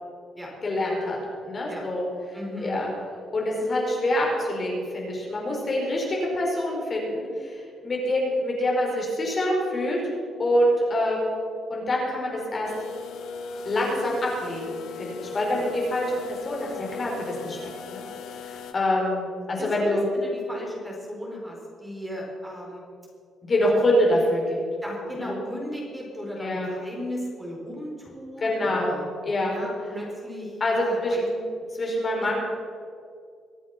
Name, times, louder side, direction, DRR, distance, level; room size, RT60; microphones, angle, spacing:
voice 1, 0.6-1.2 1.4-2.9 3.3-10.0 10.4-11.3 11.7-12.7 13.6-17.6 17.9-18.0 18.4-20.0 23.4-24.6 25.2-25.4 26.4-26.7 28.4-28.9 29.2-29.6 30.6-31.5 31.8-32.4, left 1 dB, 35° left, -2 dB, 4.6 m, -25 dB
voice 2, 2.3-2.8 15.5-15.6 19.6-22.8 24.8-29.0 29.5-31.3 32.2-32.3, equal, 10° right, -2 dB, 4.5 m, -36 dB
sound 1, 12.6-18.7, left 5 dB, 80° left, 1.3 m, -38 dB
23.5 x 8.1 x 6.0 m, 2.3 s
cardioid pair, 90°, 0 cm